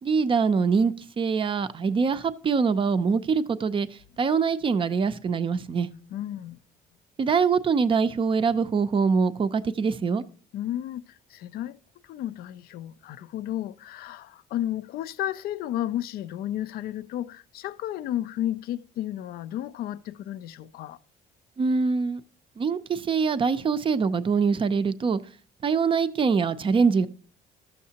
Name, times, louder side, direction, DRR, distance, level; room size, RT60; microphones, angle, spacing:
voice 1, 0.0-3.9 4.2-5.9 7.2-10.2 21.6-22.2 22.6-25.2 25.6-27.1, right 5 dB, 30° right, 0.5 m, -24 dB
voice 2, 5.9-6.6 10.5-11.8 12.0-21.0, left 12 dB, 65° left, 0.4 m, -33 dB
13.5 x 6.5 x 2.8 m
cardioid pair, 110°, 17 cm